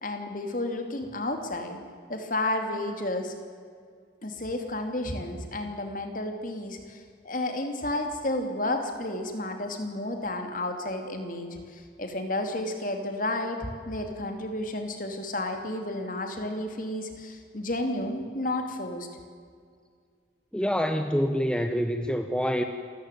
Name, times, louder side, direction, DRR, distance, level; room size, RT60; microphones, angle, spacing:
voice 1, 0.0-1.8 2.1-3.3 4.2-19.1, left 1 dB, 45° left, 5 dB, 2.9 m, -32 dB
voice 2, 20.5-22.6, equal, 5° left, 6 dB, 0.9 m, -26 dB
27.5 x 14.5 x 9.3 m, 2.1 s
head